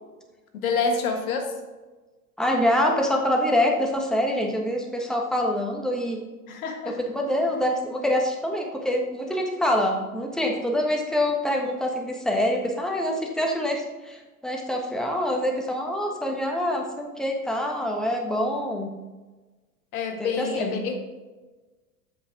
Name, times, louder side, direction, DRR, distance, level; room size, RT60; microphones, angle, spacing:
voice 1, 0.5-1.5 6.5-7.0 19.9-21.0, left 5 dB, 70° left, 4 dB, 1.5 m, -27 dB
voice 2, 2.4-6.2 6.8-18.9 20.2-20.8, left 1 dB, ahead, 1 dB, 1.4 m, -25 dB
8.1 x 7.1 x 3.7 m, 1.2 s
figure-of-eight pair, 85°, 45 cm